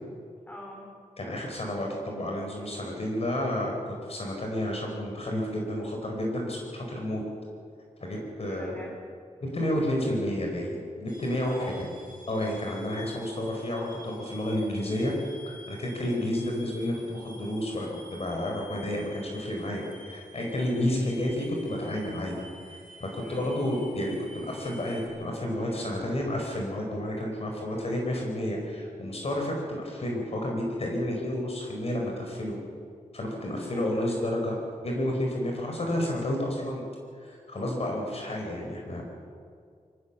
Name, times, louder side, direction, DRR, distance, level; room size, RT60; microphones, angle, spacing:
voice 1, 0.5-0.9 8.4-9.1 11.5-11.9 20.8-21.1 23.2-23.5 33.6-34.2, equal, 10° left, -1 dB, 3.3 m, -44 dB
voice 2, 1.2-7.2 8.0-8.7 9.4-11.8 12.3-15.1 15.5-22.3 22.7-32.6 33.1-34.6 34.8-36.8 37.2-39.1, left 1 dB, 50° left, 0 dB, 4.6 m, -31 dB
sound 1, 11.1-25.1, left 1 dB, 85° left, 5.9 m, -50 dB
24.5 x 17.5 x 7.4 m, 2.2 s
wide cardioid pair, 120°, 14 cm